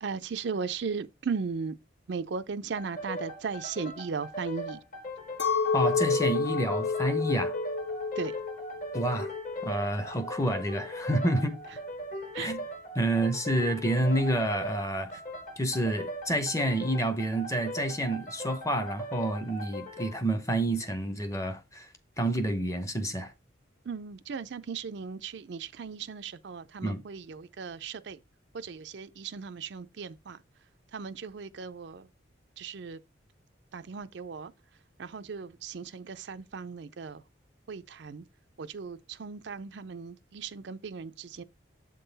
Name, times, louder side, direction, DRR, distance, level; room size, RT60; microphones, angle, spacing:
voice 1, 0.0-1.8 2.1-4.8 8.2-8.4 12.3-12.5 23.9-28.2 28.5-30.4 30.9-32.1 32.6-33.0 33.7-34.5 35.0-37.2 37.7-38.2 38.6-41.4, right 5 dB, 65° right, 0.4 m, -37 dB
sound 1, 2.8-20.2, equal, 40° left, 1.2 m, -39 dB
Chink clink, 5.4-10.8, left 5 dB, 70° left, 1.1 m, -30 dB
voice 2, 5.7-7.6 8.9-9.3 9.6-11.6 12.4-12.6 12.9-15.1 15.6-21.9 22.2-23.3 26.8-27.0, right 1 dB, 15° left, 0.7 m, -29 dB
7.5 x 3.8 x 4.0 m
head